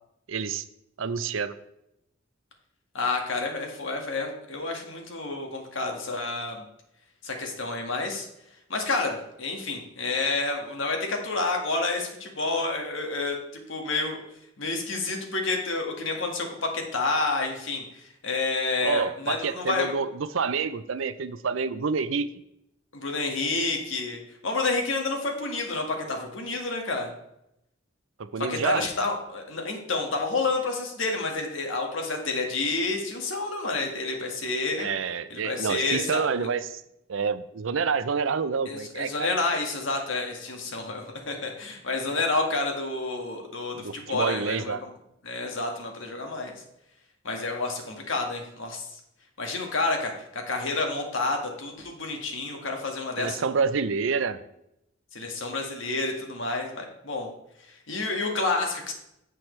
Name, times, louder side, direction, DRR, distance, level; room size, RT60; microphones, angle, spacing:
voice 1, 0.3-0.6 1.0-1.5 18.8-22.3 28.2-28.9 34.8-36.8 37.1-39.4 43.8-44.8 53.2-54.4, right 5 dB, 70° right, 13 dB, 0.5 m, -28 dB
voice 2, 2.9-6.6 7.2-8.3 8.7-13.4 13.7-14.2 14.6-19.9 22.9-27.1 28.5-34.9 35.3-36.5 38.7-44.9 45.2-46.6 47.2-48.9 49.4-53.4 55.1-57.3 57.9-58.9, left 3 dB, 70° left, 2 dB, 1.8 m, -29 dB
10.5 x 7.7 x 3.3 m, 0.82 s
head